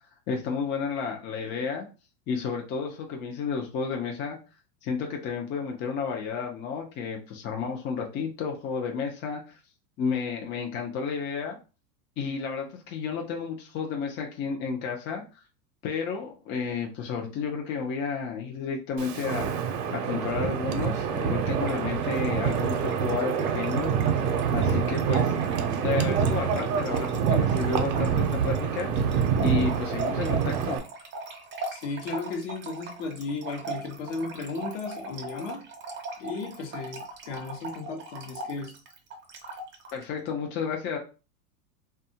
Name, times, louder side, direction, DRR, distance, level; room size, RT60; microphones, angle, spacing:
voice 1, 0.3-1.9 2.3-4.4 4.8-9.4 10.0-11.6 12.2-15.2 15.8-19.5 19.9-25.3 25.8-30.8 39.9-41.0, left 5 dB, 25° left, 0.4 m, -31 dB
Wind, 19.0-30.8, right 7 dB, 75° right, 0.7 m, -26 dB
Trickle dribble / Fill (with liquid), 21.6-40.0, right 3 dB, 25° right, 0.6 m, -40 dB
voice 2, 31.7-35.7 36.2-38.8, left 4 dB, 55° left, 0.8 m, -35 dB
2.6 x 2.3 x 2.7 m
hypercardioid pair, 115°, 46 cm